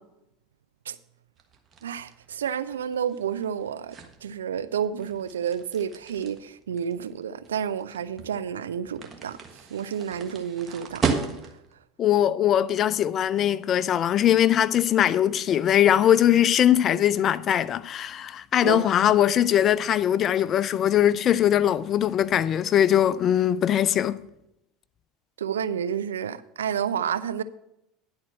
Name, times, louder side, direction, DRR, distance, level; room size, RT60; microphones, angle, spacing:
sound 1, 1.4-11.8, right 5 dB, 35° right, 1.4 m, -35 dB
voice 1, 1.8-9.4 9.7-11.0 18.6-19.1 25.4-27.4, right 8 dB, 90° right, 0.4 m, -30 dB
voice 2, 12.0-24.2, left 10 dB, 45° left, 0.5 m, -21 dB
10.5 x 4.4 x 7.5 m
hypercardioid pair, 85°, 0 cm